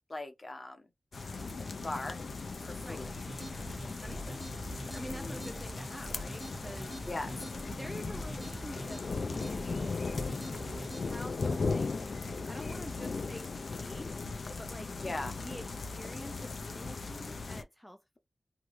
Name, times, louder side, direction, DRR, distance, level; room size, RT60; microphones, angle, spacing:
voice 1, 0.1-0.9 1.8-2.2 2.6-3.1 5.1-5.4 7.1-7.4 15.0-15.3, left 2 dB, 40° left, 0.8 m, -39 dB
sound 1, 1.1-17.6, left 4 dB, 70° left, 0.4 m, -38 dB
sound 2, 3.0-11.2, right 1 dB, 35° right, 0.6 m, -45 dB
voice 2, 4.0-4.5 4.8-7.0 7.7-9.9 11.0-12.1 12.5-13.5 13.8-14.9 15.4-18.2, equal, 5° left, 0.3 m, -47 dB
2.7 x 2.3 x 3.0 m
wide cardioid pair, 85°, 0 cm